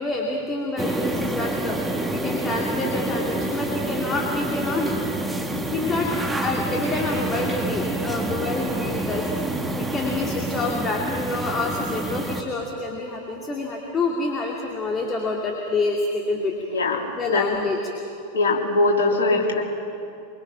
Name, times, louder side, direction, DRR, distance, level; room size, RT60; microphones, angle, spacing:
voice 1, 0.0-1.8 2.1-5.1 5.7-6.1 6.4-16.5 17.2-17.8, left 3 dB, 20° left, -1 dB, 2.5 m, -27 dB
sound 1, 0.8-12.4, right 2 dB, 5° right, 1.5 m, -27 dB
voice 2, 16.7-17.0 17.3-17.5 18.3-19.6, left 3 dB, 65° left, 0 dB, 3.1 m, -21 dB
24.0 x 24.0 x 5.8 m, 2.7 s
figure-of-eight pair, 90°, 0 cm